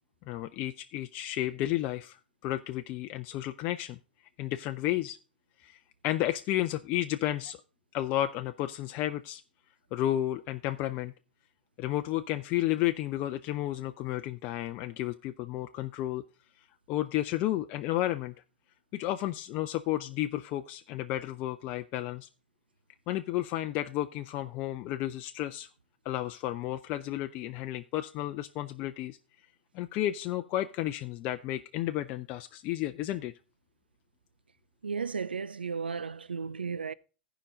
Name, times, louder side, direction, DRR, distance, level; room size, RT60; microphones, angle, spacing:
voice 1, 0.3-2.2 2.4-4.0 4.4-5.2 5.6-5.8 6.0-7.6 7.9-9.4 9.9-11.1 11.8-16.2 16.9-18.3 18.9-22.3 23.1-25.7 26.0-29.2 29.7-33.3, left 14 dB, 45° left, 0.6 m, -32 dB
voice 2, 34.8-36.9, right 5 dB, 90° right, 0.4 m, -34 dB
15.0 x 5.1 x 5.2 m
hypercardioid pair, 95°, 5 cm